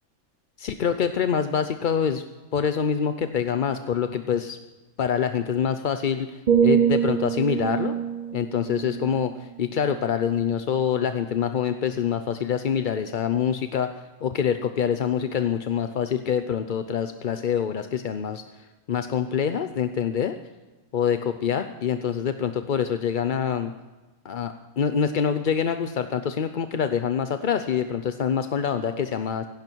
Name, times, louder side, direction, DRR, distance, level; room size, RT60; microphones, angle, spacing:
voice 1, 0.6-2.2 2.5-4.6 5.0-8.0 8.3-13.9 14.2-20.4 20.9-23.7 24.2-29.5, left 7 dB, 50° left, 9 dB, 0.6 m, -25 dB
sound 1, 6.5-10.4 10.9-11.1, right 8 dB, 50° right, 0.5 m, -25 dB
17.5 x 16.0 x 4.6 m, 1.2 s
omnidirectional pair, 1.5 m